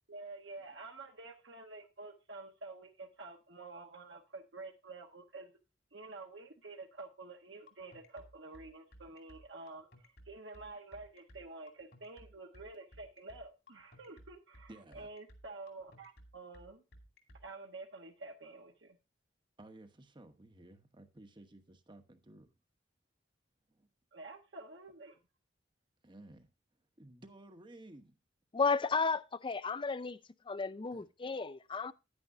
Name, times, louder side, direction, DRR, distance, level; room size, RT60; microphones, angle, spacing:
voice 1, 0.1-5.5 5.9-16.8 17.4-19.0 24.1-25.2, right 3 dB, 70° right, 1.3 m, -49 dB
sound 1, 7.7-17.4, equal, 60° left, 2.5 m, -57 dB
voice 2, 14.7-15.1 19.6-22.5 23.7-23.9 26.0-26.5 27.0-28.1 30.9-31.0, right 1 dB, 25° right, 1.0 m, -55 dB
voice 3, 28.5-30.2 30.5-31.9, left 4 dB, 25° left, 0.4 m, -33 dB
10.0 x 9.9 x 2.7 m
head